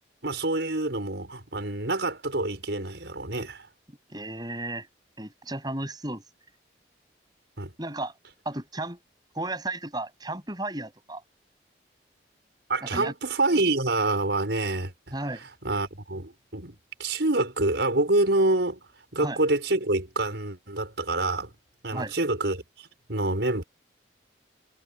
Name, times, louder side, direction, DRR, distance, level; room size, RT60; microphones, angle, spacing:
voice 1, 0.2-3.7 7.6-7.7 12.7-15.1 15.6-18.8 19.1-21.5 21.8-23.6, right 2 dB, 75° right, 5.2 m, -27 dB
voice 2, 4.1-4.9 5.2-6.2 7.8-8.1 8.4-9.0 9.3-11.2 12.8-13.1 15.1-15.4 19.2-19.4 21.9-22.1, right 2 dB, 20° right, 7.6 m, -34 dB
head